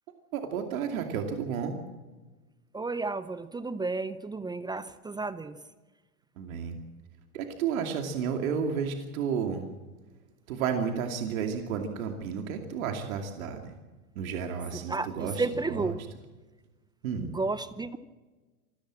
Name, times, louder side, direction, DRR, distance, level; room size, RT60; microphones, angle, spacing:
voice 1, 0.3-1.8 6.4-6.8 7.3-9.7 10.5-13.7 14.2-15.9 17.0-17.3, right 6 dB, 70° right, 5 dB, 2.7 m, -32 dB
voice 2, 2.7-5.6 14.7-16.0 17.2-18.0, right 3 dB, 10° right, 14 dB, 0.7 m, -32 dB
26.5 x 14.0 x 7.6 m, 1.2 s
hypercardioid pair, 110°, 43 cm